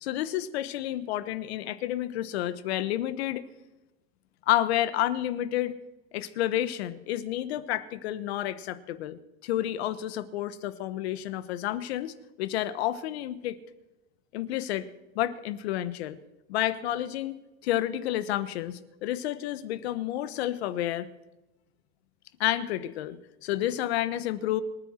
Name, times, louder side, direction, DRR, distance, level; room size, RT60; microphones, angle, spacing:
voice 1, 0.0-3.4 4.5-5.8 6.1-13.6 14.3-14.9 15.1-16.2 16.5-17.4 17.6-21.1 22.4-24.6, left 13 dB, 80° left, 14 dB, 1.3 m, -30 dB
27.5 x 10.0 x 4.4 m, 1.0 s
supercardioid pair, 135°, 31 cm